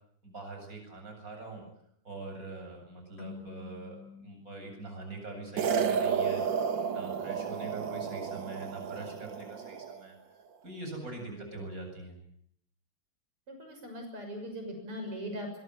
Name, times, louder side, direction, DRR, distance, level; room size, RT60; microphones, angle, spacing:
voice 1, 0.2-1.6 2.0-6.4 6.9-10.2 10.6-12.2, right 2 dB, 40° right, 4 dB, 8.4 m, -43 dB
sound 1, 3.2-6.4, left 5 dB, 75° left, 4.5 m, -50 dB
sound 2, 5.6-10.0, right 6 dB, 60° right, 1.9 m, -32 dB
voice 2, 13.5-15.6, equal, 85° right, 4 dB, 7.5 m, -40 dB
23.0 x 23.0 x 9.5 m, 0.69 s
omnidirectional pair, 2.4 m